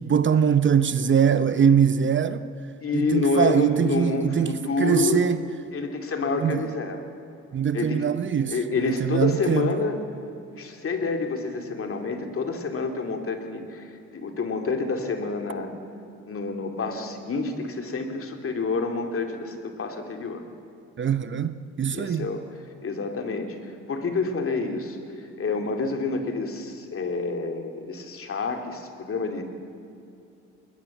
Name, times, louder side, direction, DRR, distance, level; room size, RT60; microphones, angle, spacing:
voice 1, 0.0-2.5 2.9-5.4 6.4-6.7 7.5-8.6 9.0-9.7 21.0-22.3, right 7 dB, 40° right, 0.8 m, -22 dB
voice 2, 2.8-5.2 5.7-7.0 7.7-8.0 8.5-10.0 10.6-15.7 16.3-20.4 21.9-22.4 22.8-29.4, left 4 dB, 45° left, 2.7 m, -28 dB
20.5 x 20.0 x 7.2 m
cardioid pair, 90°, 30 cm